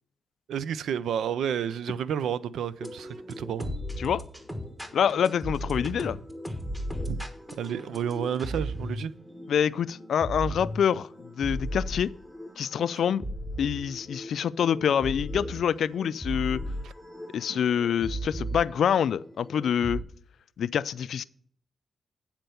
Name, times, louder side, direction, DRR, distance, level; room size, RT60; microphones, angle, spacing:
voice 1, 0.5-3.7 7.1-7.2 7.6-9.1 16.8-16.9 17.5-17.6, right 8 dB, 90° right, 0.4 m, -31 dB
sound 1, 2.8-20.0, equal, 5° right, 1.3 m, -36 dB
voice 2, 4.9-6.2 9.5-12.1 12.6-13.2 13.6-16.6 17.3-20.0 20.6-21.2, left 8 dB, 75° left, 0.3 m, -26 dB
9.2 x 4.4 x 6.8 m
cardioid pair, 85°, 0 cm